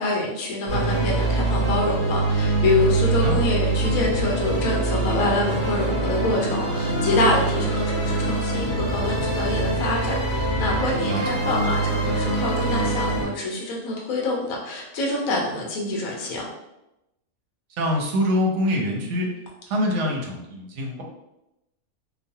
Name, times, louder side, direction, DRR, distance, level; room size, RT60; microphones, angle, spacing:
voice 1, 0.0-16.4, left 2 dB, 75° left, -1 dB, 1.0 m, -26 dB
sound 1, 0.7-13.2, right 2 dB, 5° right, 0.8 m, -24 dB
voice 2, 17.8-19.3 19.7-21.0, left 1 dB, 65° right, 0 dB, 0.8 m, -24 dB
3.0 x 2.0 x 2.7 m, 0.90 s
omnidirectional pair, 1.5 m